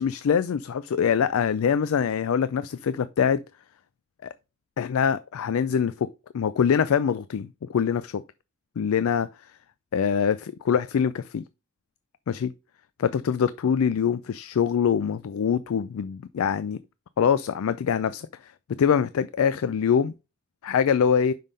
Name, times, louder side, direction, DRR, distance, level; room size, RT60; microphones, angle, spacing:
voice 1, 0.0-3.4 4.2-4.3 4.8-6.1 6.3-8.2 8.8-9.3 9.9-11.4 12.3-12.5 13.0-16.8 17.2-18.5 18.8-20.1 20.6-21.3, left 7 dB, 75° left, 0.4 m, -24 dB
5.6 x 5.4 x 5.0 m
head